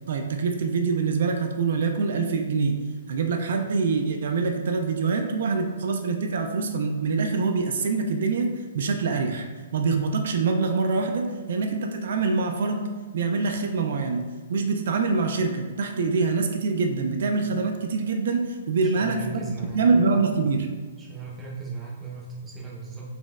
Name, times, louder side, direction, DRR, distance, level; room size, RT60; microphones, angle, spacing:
voice 1, 0.1-2.8 3.1-9.5 9.7-12.9 13.1-19.4 19.7-20.7, right 4 dB, 65° right, 4 dB, 0.3 m, -25 dB
voice 2, 18.8-20.3 21.0-23.1, right 4 dB, 10° right, -4 dB, 0.6 m, -37 dB
4.1 x 3.0 x 2.4 m, 1.5 s
hypercardioid pair, 165°, 0 cm